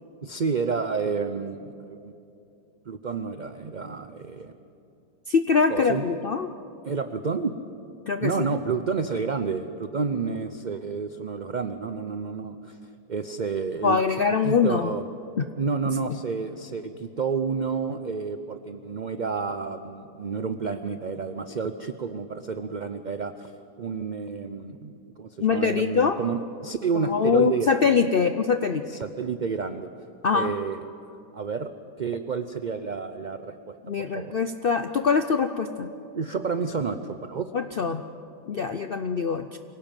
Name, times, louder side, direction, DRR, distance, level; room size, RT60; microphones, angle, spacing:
voice 1, 0.2-2.1 2.9-4.5 5.7-6.0 6.9-7.5 8.2-12.8 13.1-14.0 14.4-15.1 15.6-23.5 23.8-24.9 25.2-28.0 28.9-29.9 30.3-30.8 31.3-31.7 32.0-33.7 34.1-34.3 36.1-37.5, right 5 dB, 55° right, 9 dB, 0.5 m, -30 dB
voice 2, 5.3-6.5 8.1-8.5 13.8-14.9 15.4-15.5 25.4-26.2 26.9-28.8 30.2-30.5 33.9-35.9 37.5-38.0 38.5-39.6, left 5 dB, 60° left, 9 dB, 0.5 m, -23 dB
25.0 x 17.5 x 9.0 m, 2.7 s
omnidirectional pair, 1.8 m